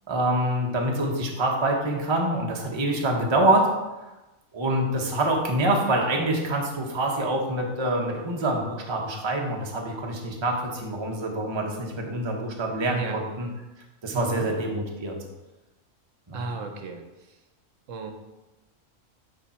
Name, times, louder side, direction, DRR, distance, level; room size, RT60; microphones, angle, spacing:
voice 1, 0.1-3.7 4.5-13.5 14.0-15.2 16.3-16.5, right 1 dB, 25° right, 0 dB, 0.7 m, -26 dB
voice 2, 12.9-13.2 14.1-14.5 16.3-17.4 17.9-18.1, right 3 dB, 75° right, 4 dB, 1.0 m, -34 dB
8.2 x 2.8 x 4.2 m, 1.0 s
omnidirectional pair, 1.4 m